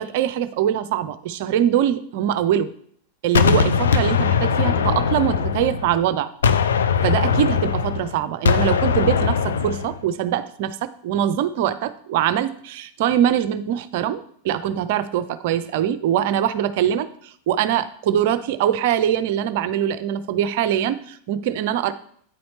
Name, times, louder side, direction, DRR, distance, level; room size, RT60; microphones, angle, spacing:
voice 1, 0.0-2.7 3.2-6.3 7.0-21.9, right 10 dB, 50° right, 12 dB, 0.5 m, -23 dB
Gunshot gunfire, 3.3-6.1 6.4-10.0, left 6 dB, 65° left, 0.4 m, -20 dB
9.3 x 4.3 x 4.2 m, 0.64 s
figure-of-eight pair, 90°, 0 cm